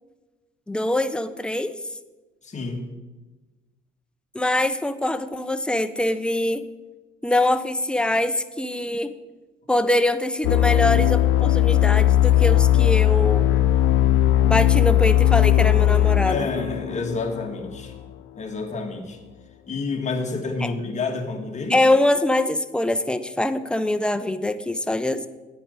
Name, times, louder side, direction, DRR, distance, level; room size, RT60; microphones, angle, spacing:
voice 1, 0.7-1.7 4.3-6.6 7.2-9.1 9.7-13.5 14.4-16.5 20.6-20.7 21.7-25.3, left 1 dB, 5° left, 10 dB, 0.6 m, -23 dB
voice 2, 2.4-2.9 16.2-17.9 18.4-19.2 19.7-21.8, left 3 dB, 35° left, 2 dB, 1.7 m, -29 dB
sound 1, 10.4-18.0, left 12 dB, 85° left, 0.7 m, -18 dB
9.3 x 8.5 x 5.0 m, 1.2 s
cardioid pair, 90°, 20 cm